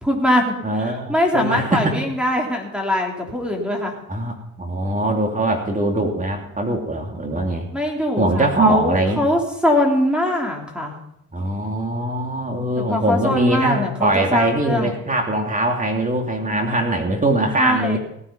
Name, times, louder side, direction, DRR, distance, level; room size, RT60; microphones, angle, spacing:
voice 1, 0.0-3.9 7.7-10.9 12.8-14.9 17.6-18.0, left 1 dB, 5° right, 1 dB, 3.3 m, -22 dB
voice 2, 0.6-2.0 4.1-7.7 8.2-9.2 11.3-18.0, right 1 dB, 25° right, 3 dB, 2.7 m, -22 dB
17.0 x 9.6 x 5.6 m, 0.80 s
cardioid pair, 90°, 30 cm